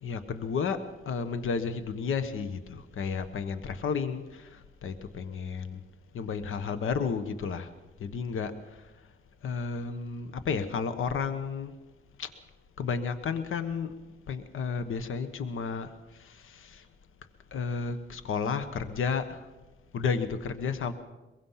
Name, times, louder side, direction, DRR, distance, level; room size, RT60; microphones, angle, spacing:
voice 1, 0.0-5.8 6.1-7.7 8.0-8.8 9.4-11.7 12.2-12.3 12.8-14.0 14.3-16.9 17.5-19.5 19.9-20.9, left 5 dB, 75° left, 10 dB, 1.3 m, -32 dB
23.5 x 22.0 x 5.8 m, 1.1 s
wide cardioid pair, 140°, 21 cm